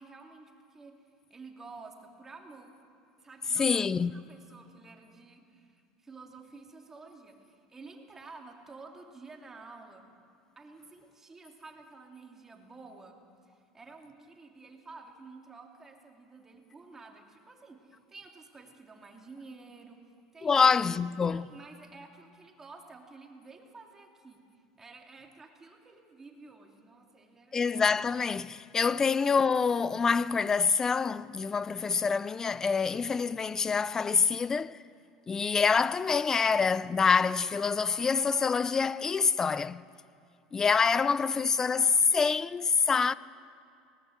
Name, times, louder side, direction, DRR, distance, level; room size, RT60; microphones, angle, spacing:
voice 1, 0.0-2.8 3.2-10.1 10.6-20.6 21.3-27.6, right 3 dB, 20° right, 2.7 m, -51 dB
voice 2, 3.6-4.3 20.4-21.5 27.5-34.8 35.3-39.8 40.5-43.1, left 5 dB, 20° left, 0.4 m, -26 dB
19.5 x 18.0 x 8.0 m
supercardioid pair, 125°, 2 cm